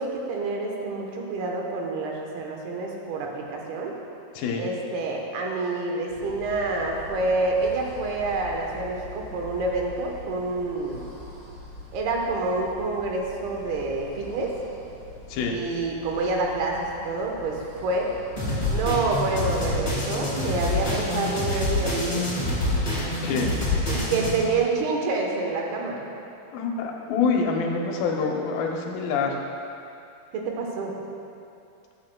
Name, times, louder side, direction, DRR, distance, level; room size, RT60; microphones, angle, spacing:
voice 1, 0.0-3.9 4.6-11.0 11.9-14.5 15.4-18.1 18.7-22.2 23.9-26.0 30.3-30.9, right 3 dB, 85° right, 0 dB, 3.0 m, -28 dB
voice 2, 4.4-4.7 15.3-15.6 23.2-23.6 26.5-29.4, left 5 dB, 75° left, 1 dB, 2.4 m, -26 dB
sound 1, 6.1-19.9, left 3 dB, 65° right, 4.2 m, -43 dB
sound 2, 18.4-24.4, left 2 dB, 15° left, 1.5 m, -26 dB
15.0 x 8.9 x 2.2 m, 2.6 s
omnidirectional pair, 4.4 m